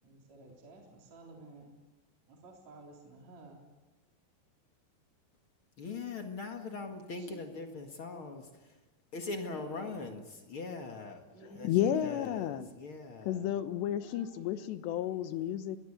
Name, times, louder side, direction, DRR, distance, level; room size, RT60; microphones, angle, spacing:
voice 1, 0.0-1.7 2.3-3.6 7.1-7.4 9.5-10.0 11.3-12.0 13.3-13.5 13.9-14.7 15.1-15.2, right 3 dB, 40° right, 0 dB, 4.5 m, -53 dB
voice 2, 5.8-8.8 9.1-13.5, left 3 dB, 50° left, 4 dB, 1.7 m, -42 dB
voice 3, 11.6-12.7 13.3-15.8, left 11 dB, 80° left, 11 dB, 3.3 m, -32 dB
23.0 x 20.0 x 8.6 m, 1.1 s
omnidirectional pair, 5.0 m